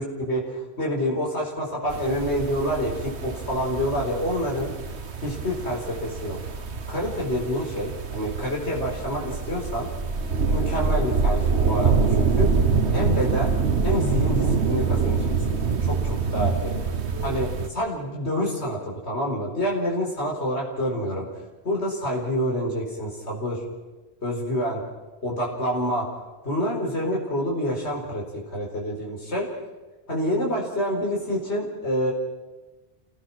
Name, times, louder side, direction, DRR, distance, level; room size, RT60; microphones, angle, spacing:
voice 1, 0.0-4.7 5.2-6.4 6.9-9.9 10.5-12.5 12.9-13.5 13.8-16.7 17.2-21.2 21.6-23.6 24.2-24.8 25.2-26.1 26.4-29.5 30.1-32.1, equal, 80° left, -2 dB, 5.1 m, -27 dB
sound 1, 1.9-17.7, right 5 dB, 80° right, 1.6 m, -25 dB
28.0 x 18.0 x 6.2 m, 1.2 s
omnidirectional pair, 1.1 m